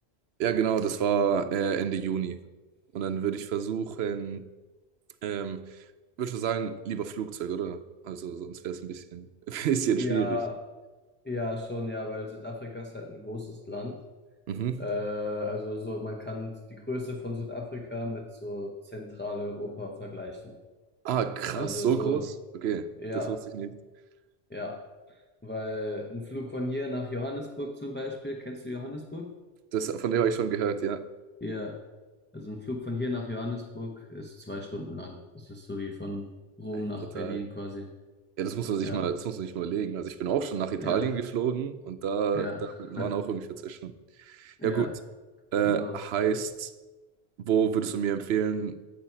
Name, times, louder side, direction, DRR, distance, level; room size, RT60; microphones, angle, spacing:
voice 1, 0.4-2.4 2.9-4.5 5.2-5.8 6.2-10.4 14.5-14.8 21.0-23.7 29.7-31.0 37.2-37.4 38.4-43.9 44.2-44.9 45.5-46.7 47.4-48.8, right 7 dB, 75° right, 0.9 m, -29 dB
voice 2, 10.0-10.6 11.2-14.0 14.8-20.6 21.5-22.2 23.0-23.4 24.5-24.8 25.1-29.3 31.4-31.8 32.3-36.3 36.6-37.9 38.8-39.1 40.8-41.1 42.3-43.2 44.6-44.9 45.6-46.0, left 2 dB, 10° left, 0.7 m, -35 dB
8.8 x 7.6 x 5.7 m
omnidirectional pair, 1.1 m